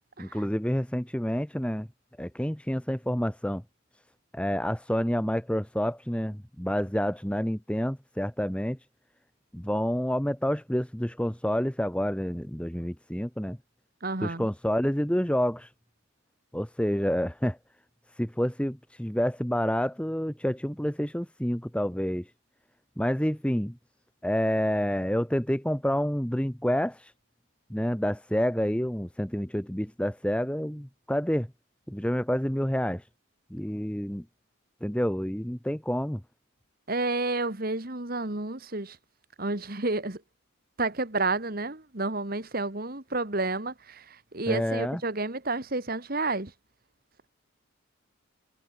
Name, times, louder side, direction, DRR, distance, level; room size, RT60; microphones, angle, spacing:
voice 1, 0.2-1.9 2.2-3.6 4.3-8.8 9.5-13.6 14.2-15.7 16.5-17.6 18.2-22.3 23.0-23.8 24.2-27.1 27.7-31.5 31.9-33.1 33.5-34.2 34.8-36.2 44.5-45.0, equal, 5° left, 1.4 m, -28 dB
voice 2, 14.0-14.5 36.9-39.0 39.4-40.2 40.8-44.1 44.3-46.5, right 2 dB, 45° right, 1.8 m, -30 dB
head